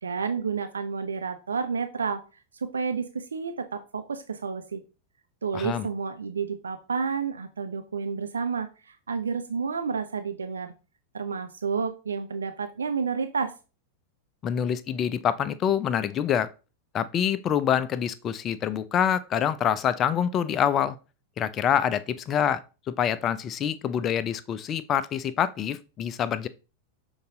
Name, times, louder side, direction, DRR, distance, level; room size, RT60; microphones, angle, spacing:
voice 1, 0.0-2.2 2.5-4.8 5.4-10.7 11.1-13.5, right 5 dB, 70° right, 0.6 m, -30 dB
voice 2, 5.5-5.9 14.4-16.5 16.9-21.0 21.4-22.6 23.0-26.5, left 9 dB, 30° left, 0.6 m, -26 dB
6.9 x 4.0 x 3.8 m
figure-of-eight pair, 90°, 0 cm